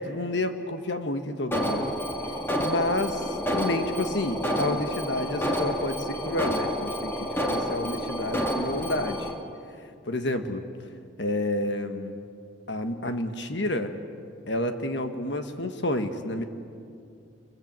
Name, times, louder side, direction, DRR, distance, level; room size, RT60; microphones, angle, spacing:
voice 1, 0.0-1.9 2.6-9.3 10.0-10.6 11.2-12.2 12.7-13.9 14.5-16.4, left 1 dB, 60° left, 7 dB, 1.5 m, -30 dB
Alarm, 1.5-9.3, equal, 10° left, 2.1 m, -29 dB
28.5 x 23.0 x 7.6 m, 2.4 s
head